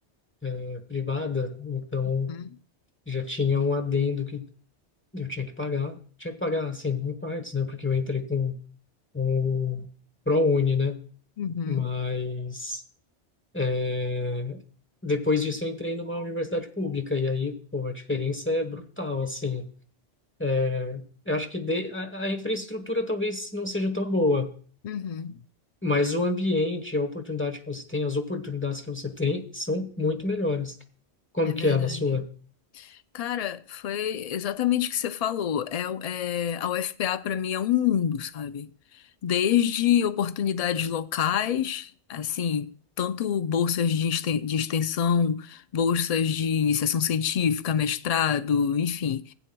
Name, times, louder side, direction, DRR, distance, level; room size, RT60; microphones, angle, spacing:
voice 1, 0.4-2.3 3.1-4.4 5.1-8.6 9.1-9.9 10.3-11.0 11.7-12.8 13.5-14.6 15.0-19.6 20.4-24.5 25.8-30.7 31.3-32.3, left 3 dB, 10° left, 1.0 m, -27 dB
voice 2, 11.4-11.9 24.8-25.4 31.5-32.0 32.7-38.7 39.2-42.7 43.0-49.3, left 8 dB, 55° left, 0.4 m, -26 dB
15.5 x 9.1 x 2.2 m
omnidirectional pair, 1.2 m